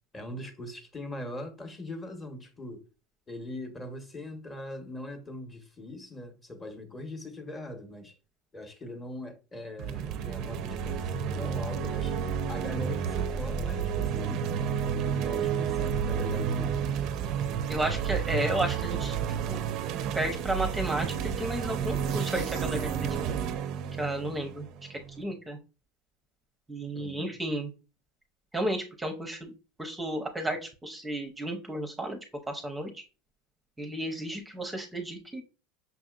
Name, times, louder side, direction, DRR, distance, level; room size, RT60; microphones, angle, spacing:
voice 1, 0.1-2.8 3.3-8.1 8.5-12.2 12.5-14.5 15.2-16.8 26.9-27.3, left 1 dB, 20° left, 0.9 m, -41 dB
sound 1, 9.8-25.2, right 7 dB, 55° right, 0.4 m, -31 dB
voice 2, 17.7-19.2 19.5-19.6 20.1-23.4 24.0-25.6 26.7-27.7 28.5-29.5 29.8-32.2 32.5-33.0 33.8-35.4, right 1 dB, 10° right, 0.6 m, -33 dB
5.7 x 2.7 x 2.3 m
supercardioid pair, 110°, 0 cm